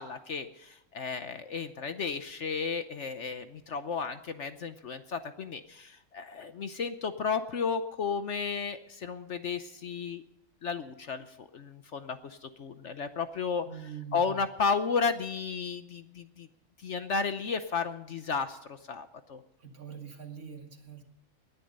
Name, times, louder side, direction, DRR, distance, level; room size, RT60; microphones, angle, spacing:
voice 1, 0.0-10.2 10.6-13.7 14.1-16.5 16.8-19.4, left 5 dB, 55° left, 10 dB, 1.0 m, -33 dB
voice 2, 13.7-14.4 19.6-21.0, right 7 dB, 65° right, 3 dB, 2.7 m, -44 dB
19.5 x 10.5 x 5.3 m, 0.85 s
omnidirectional pair, 1.7 m